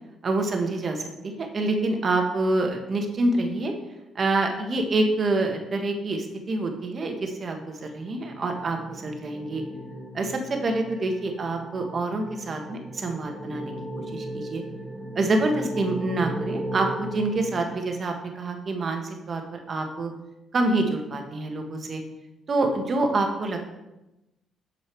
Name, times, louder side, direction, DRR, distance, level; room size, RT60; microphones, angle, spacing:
voice 1, 0.2-3.7 4.1-9.6 10.1-13.7 14.1-14.6 15.1-20.1 20.5-22.0 22.5-23.6, right 2 dB, 45° right, 4 dB, 1.4 m, -26 dB
sound 1, 7.7-18.4, right 1 dB, 15° right, 1.9 m, -37 dB
6.9 x 6.4 x 4.6 m, 0.96 s
cardioid pair, 90°, 0 cm